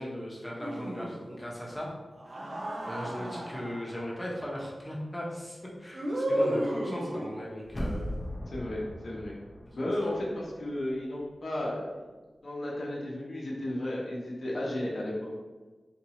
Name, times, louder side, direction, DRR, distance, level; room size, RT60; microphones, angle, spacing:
voice 1, 0.0-1.9 2.9-8.1 9.7-9.8, equal, 15° left, -4 dB, 1.0 m, -38 dB
sound 1, 0.6-1.4 2.2-4.0 5.9-7.5, equal, 50° right, 0.5 m, -33 dB
sound 2, 7.7-10.6 10.9-11.0, equal, 30° left, 0.6 m, -38 dB
voice 2, 8.5-9.3 9.7-12.1 12.4-15.3, left 1 dB, 60° left, -4 dB, 0.8 m, -33 dB
4.0 x 2.6 x 2.9 m, 1.3 s
wide cardioid pair, 75°, 0 cm